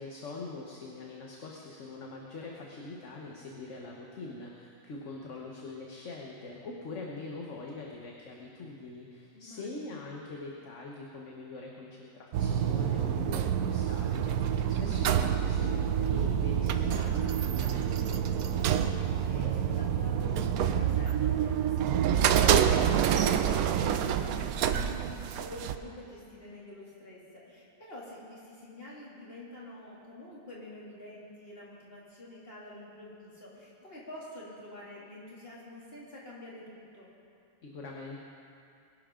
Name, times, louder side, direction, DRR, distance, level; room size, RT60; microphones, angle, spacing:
voice 1, 0.0-18.2 37.6-38.2, left 3 dB, 60° left, -1 dB, 1.5 m, -43 dB
voice 2, 9.3-10.0 13.2-13.6 19.0-37.1, left 1 dB, 40° left, -6 dB, 3.1 m, -47 dB
sound 1, 12.3-25.8, right 9 dB, 85° right, 1.1 m, -27 dB
22.0 x 11.5 x 3.8 m, 2.6 s
omnidirectional pair, 1.5 m